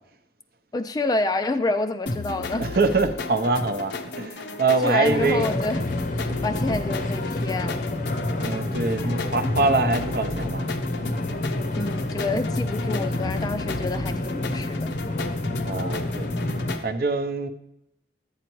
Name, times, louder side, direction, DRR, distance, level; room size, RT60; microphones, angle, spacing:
voice 1, 0.7-2.7 4.8-5.8 6.1-8.0 11.8-14.9, left 2 dB, 20° left, 0.3 m, -28 dB
sound 1, 2.1-16.8, left 3 dB, 80° left, 0.7 m, -34 dB
voice 2, 2.6-5.5 8.4-10.7 10.9-11.1 15.6-16.3 16.8-17.5, right 3 dB, 55° right, 0.6 m, -24 dB
sound 2, 5.1-16.8, left 1 dB, 50° left, 0.7 m, -29 dB
11.5 x 8.2 x 3.0 m
head